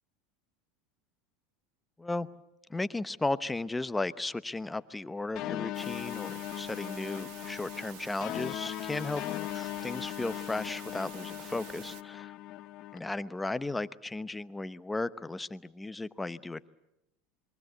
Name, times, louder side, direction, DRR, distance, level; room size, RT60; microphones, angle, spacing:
voice 1, 2.7-9.2 9.5-12.3 12.9-16.7, left 2 dB, 10° left, 14 dB, 0.9 m, -35 dB
sound 1, 5.4-13.0, left 14 dB, 50° left, 1.0 m, -39 dB
sound 2, 5.7-12.0, right 15 dB, 65° right, 1.2 m, -49 dB
27.0 x 22.5 x 8.1 m, 0.87 s
supercardioid pair, 110°, 0 cm